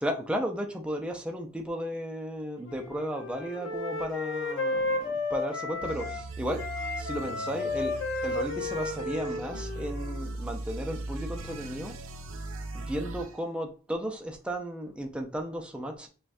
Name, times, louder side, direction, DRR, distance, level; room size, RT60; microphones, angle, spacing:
voice 1, 0.0-6.6 7.0-7.9 8.2-11.9 12.7-16.1, equal, 5° right, 2 dB, 0.4 m, -34 dB
Wind instrument woodwind instrument, 2.7-6.2 6.6-10.3, left 3 dB, 65° left, 0.9 m, -33 dB
sound 1, 5.8-13.4, right 2 dB, 80° right, 0.5 m, -39 dB
5.4 x 2.3 x 2.6 m, 0.37 s
head